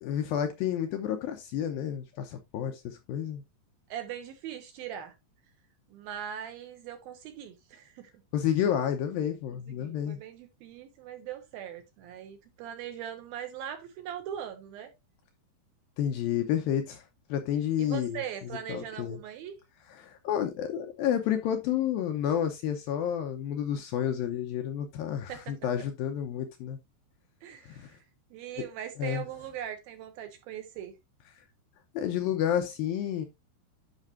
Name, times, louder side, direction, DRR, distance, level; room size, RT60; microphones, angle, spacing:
voice 1, 0.0-3.4 8.3-10.2 16.0-17.0 17.3-19.2 19.9-26.8 27.7-28.0 29.0-29.2 31.9-33.3, left 9 dB, 85° left, 2.1 m, -30 dB
voice 2, 3.9-5.1 5.9-8.1 9.7-14.9 17.8-19.6 25.3-25.6 27.4-27.9 28.3-30.9, right 9 dB, 75° right, 2.4 m, -40 dB
11.0 x 5.9 x 2.6 m
omnidirectional pair, 5.2 m